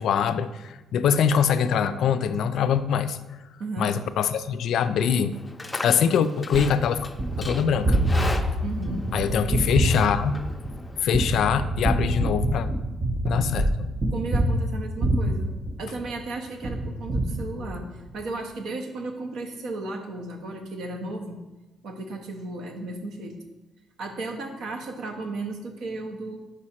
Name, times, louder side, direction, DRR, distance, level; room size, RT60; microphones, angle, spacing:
voice 1, 0.0-3.2 3.8-5.4 5.8-7.1 7.4-8.0 9.1-10.3 11.0-12.7 13.3-13.9, left 7 dB, 75° left, 12 dB, 0.3 m, -23 dB
voice 2, 3.6-3.9 8.6-9.1 14.1-15.5 15.8-17.9 18.1-21.4 21.8-23.4 24.0-26.4, right 2 dB, 75° right, 4 dB, 0.8 m, -34 dB
Livestock farm animals working animals, 5.3-11.0, left 2 dB, 15° left, 0.5 m, -37 dB
Gunshot gunfire, 6.5-16.2 16.6-18.1, right 1 dB, 25° right, 0.6 m, -26 dB
5.0 x 4.8 x 4.3 m, 1.1 s
cardioid pair, 90°, 0 cm